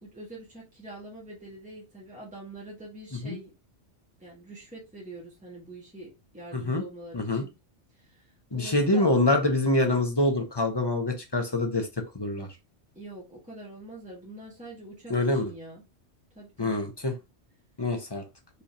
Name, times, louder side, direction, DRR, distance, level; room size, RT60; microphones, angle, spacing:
voice 1, 0.0-3.5 4.2-7.5 8.0-8.3 8.5-9.1 12.9-15.8 16.3-16.8, right 1 dB, 5° right, -5 dB, 1.6 m, -44 dB
voice 2, 6.5-6.8 7.1-7.4 8.5-11.9 12.1-12.5 15.1-15.5 16.6-17.1 17.8-18.2, left 2 dB, 25° left, 4 dB, 0.8 m, -25 dB
5.3 x 3.3 x 2.8 m, 0.25 s
omnidirectional pair, 1.2 m